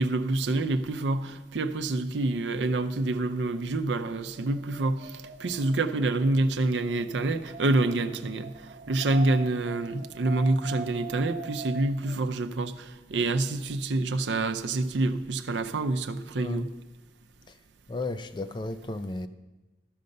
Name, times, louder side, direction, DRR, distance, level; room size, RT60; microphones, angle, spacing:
voice 1, 0.0-16.7, right 2 dB, 85° right, 0.6 m, -27 dB
Wind, 4.3-12.2, right 3 dB, 40° right, 0.4 m, -43 dB
voice 2, 16.4-16.7 17.9-19.3, left 2 dB, 25° left, 0.4 m, -33 dB
13.0 x 5.3 x 6.6 m
head